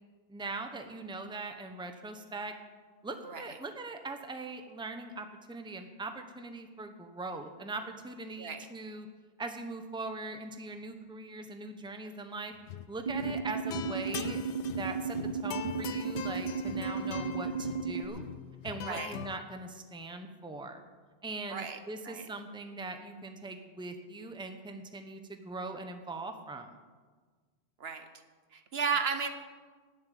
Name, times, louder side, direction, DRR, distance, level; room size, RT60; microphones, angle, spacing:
voice 1, 0.3-2.5 3.0-9.1 9.4-12.5 12.9-14.4 14.8-15.2 15.4-18.3 18.6-20.8 21.2-26.8, right 3 dB, 5° right, 6 dB, 0.8 m, -41 dB
sound 1, 12.6-12.9 13.2-19.4, left 9 dB, 85° left, 0.9 m, -42 dB
sound 2, 13.1-18.1, right 5 dB, 45° right, 0.7 m, -34 dB
voice 2, 28.5-29.3, right 6 dB, 65° right, 8 dB, 1.2 m, -33 dB
12.0 x 7.4 x 9.3 m, 1.5 s
omnidirectional pair, 1.1 m